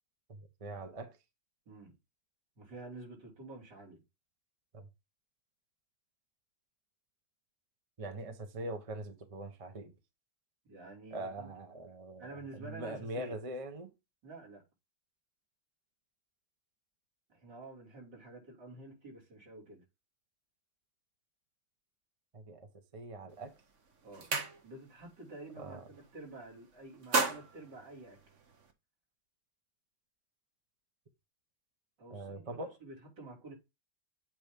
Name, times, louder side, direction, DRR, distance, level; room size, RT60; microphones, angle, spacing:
voice 1, 0.3-1.1 4.7-4.9 8.0-9.9 11.1-13.9 22.3-23.5 25.6-25.8 32.1-32.7, right 1 dB, 25° right, 0.9 m, -42 dB
voice 2, 1.7-2.0 2.6-4.0 10.7-11.5 12.2-13.4 14.2-14.6 17.3-19.8 24.0-24.3 24.6-28.2 32.0-33.5, right 2 dB, 70° right, 4.0 m, -49 dB
sound 1, 23.3-23.5 23.9-25.0 25.4-25.6 25.9-26.5 26.8-28.7, right 4 dB, 45° right, 1.3 m, -35 dB
8.7 x 3.2 x 5.2 m
omnidirectional pair, 1.9 m